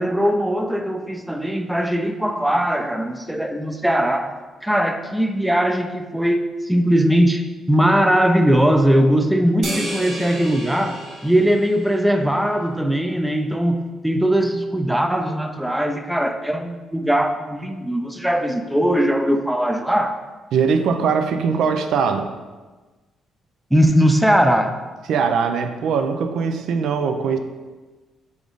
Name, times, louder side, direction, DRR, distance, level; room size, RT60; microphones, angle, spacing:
voice 1, 0.0-4.3 4.6-20.2 23.7-24.8, equal, 5° right, 0.4 m, -20 dB
sound 1, 9.6-12.3, right 1 dB, 60° right, 1.3 m, -32 dB
voice 2, 20.5-22.3 25.1-27.4, right 6 dB, 75° right, 0.3 m, -21 dB
3.5 x 3.5 x 3.8 m
cardioid pair, 90°, 0 cm